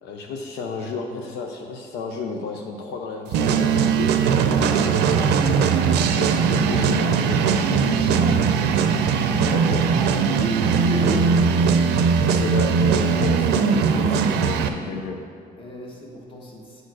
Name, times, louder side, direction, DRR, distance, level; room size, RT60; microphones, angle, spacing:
voice 1, 0.0-4.1 6.2-8.4 9.5-9.9 12.2-15.2, left 4 dB, 80° left, 2 dB, 0.7 m, -32 dB
sound 1, 3.3-14.7, right 6 dB, 80° right, 0.5 m, -20 dB
voice 2, 10.2-11.3 15.6-16.6, equal, 30° left, -2 dB, 1.6 m, -34 dB
8.1 x 4.5 x 6.2 m, 2.2 s
cardioid pair, 110°, 17 cm